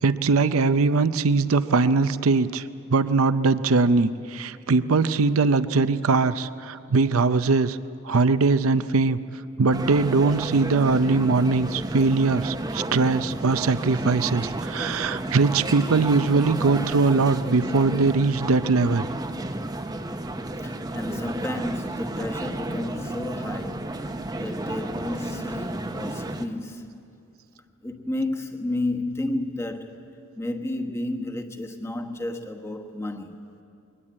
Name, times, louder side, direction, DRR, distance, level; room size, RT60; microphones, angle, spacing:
voice 1, 0.0-7.8 8.0-9.2 9.6-19.1, right 4 dB, 85° right, 0.6 m, -21 dB
sound 1, 9.7-26.5, right 2 dB, 20° right, 0.7 m, -32 dB
voice 2, 20.6-27.0 27.8-30.1 30.4-33.4, left 1 dB, 15° left, 1.2 m, -32 dB
22.0 x 19.5 x 8.7 m
head